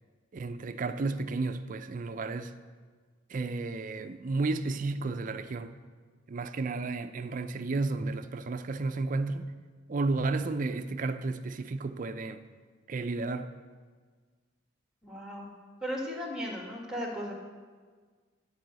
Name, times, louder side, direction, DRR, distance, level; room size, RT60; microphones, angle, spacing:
voice 1, 0.3-2.5 3.3-5.8 6.3-9.6 9.9-12.4 12.9-13.5, right 3 dB, 45° right, 0.4 m, -32 dB
voice 2, 15.0-15.5 15.8-17.3, equal, 5° right, 1.6 m, -36 dB
10.5 x 4.8 x 7.5 m
head